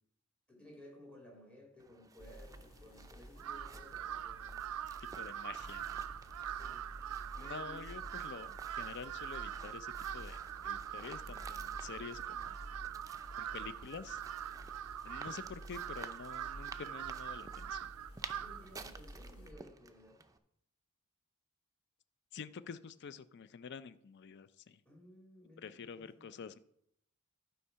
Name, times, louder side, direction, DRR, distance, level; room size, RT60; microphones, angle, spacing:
voice 1, 0.5-4.7 6.5-6.9 7.4-7.9 15.2-15.4 18.3-20.2 24.9-26.3, left 1 dB, 5° left, 0 dB, 2.1 m, -57 dB
sound 1, 1.8-20.4, right 4 dB, 15° right, 0.5 m, -55 dB
sound 2, 2.2-19.5, right 1 dB, 85° left, 1.2 m, -52 dB
Crow, 3.4-18.8, right 11 dB, 90° right, 0.3 m, -43 dB
voice 2, 5.2-6.1 7.4-12.6 13.4-14.2 15.0-17.9 22.3-24.8 25.6-26.6, left 6 dB, 55° left, 15 dB, 0.4 m, -48 dB
11.5 x 4.5 x 5.6 m, 0.73 s
head